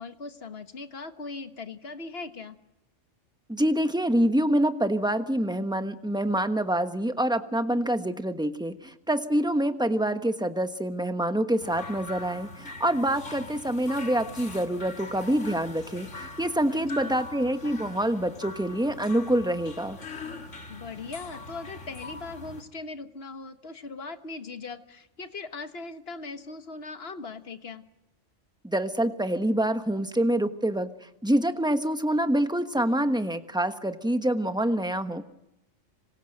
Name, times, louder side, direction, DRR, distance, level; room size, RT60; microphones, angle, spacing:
voice 1, 0.0-2.6 16.7-17.2 20.7-27.9, left 3 dB, 55° left, 9 dB, 1.6 m, -39 dB
voice 2, 3.5-20.0 28.6-30.9 31.2-35.2, right 1 dB, 5° right, 8 dB, 1.2 m, -26 dB
sound 1, 11.6-22.6, left 3 dB, 70° left, 2.3 m, -42 dB
26.5 x 26.0 x 7.9 m, 0.89 s
omnidirectional pair, 1.3 m